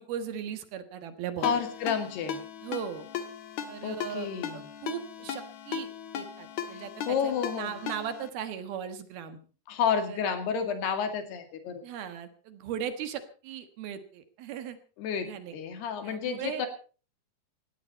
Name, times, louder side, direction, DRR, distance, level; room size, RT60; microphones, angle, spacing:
voice 1, 0.0-1.6 2.6-3.1 3.7-5.9 6.1-9.4 10.1-10.2 11.8-14.8 15.2-15.6 16.0-16.6, right 8 dB, 70° right, 10 dB, 3.2 m, -38 dB
voice 2, 1.4-2.4 3.8-4.6 6.7-7.7 9.7-11.8 15.0-15.3 15.5-16.7, left 7 dB, 75° left, 7 dB, 4.3 m, -30 dB
Ringtone, 1.4-8.3, left 8 dB, 60° left, 2.2 m, -38 dB
19.0 x 16.0 x 4.2 m, 0.37 s
omnidirectional pair, 4.7 m